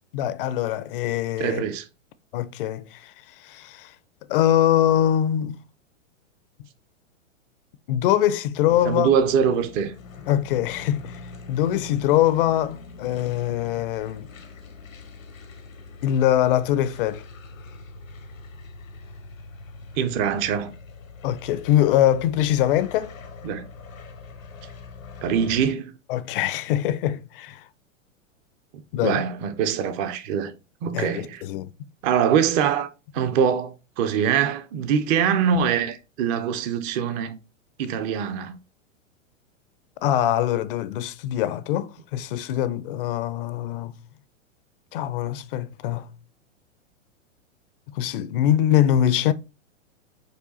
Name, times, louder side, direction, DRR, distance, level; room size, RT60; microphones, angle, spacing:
voice 1, 0.1-1.6 2.3-3.0 3.4-3.9 4.3-5.6 7.9-9.1 10.3-11.2 11.5-14.3 16.0-17.2 21.2-23.1 26.1-27.6 28.9-29.2 30.9-31.7 40.0-44.0 44.9-46.1 47.9-49.3, left 11 dB, 45° left, 0.4 m, -23 dB
voice 2, 1.4-1.9 8.8-9.9 20.0-20.7 23.4-23.7 25.2-25.9 29.0-30.5 30.8-31.4 32.0-32.9 33.1-37.4 37.8-38.6, right 7 dB, 25° right, 0.3 m, -23 dB
sound 1, 8.7-25.7, left 4 dB, 90° left, 1.0 m, -43 dB
4.8 x 2.3 x 4.0 m
hypercardioid pair, 115°, 39 cm